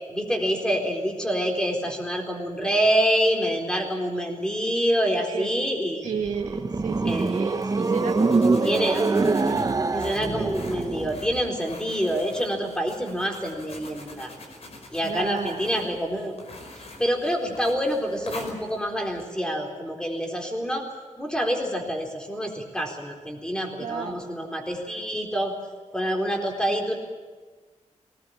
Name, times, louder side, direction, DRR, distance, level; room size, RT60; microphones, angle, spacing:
voice 1, 0.1-6.0 7.0-7.3 8.6-9.0 9.9-14.3 14.9-16.4 17.0-20.9 21.2-25.6 25.9-27.0, equal, 5° left, 2 dB, 4.2 m, -26 dB
voice 2, 6.0-9.0 15.0-15.7 23.8-24.3, right 6 dB, 70° right, 0 dB, 2.1 m, -33 dB
sound 1, 6.1-11.5, right 3 dB, 30° right, 0.9 m, -24 dB
sound 2, 6.9-19.3, left 2 dB, 55° left, 5.1 m, -45 dB
21.0 x 18.5 x 8.9 m, 1.3 s
wide cardioid pair, 125°, 13 cm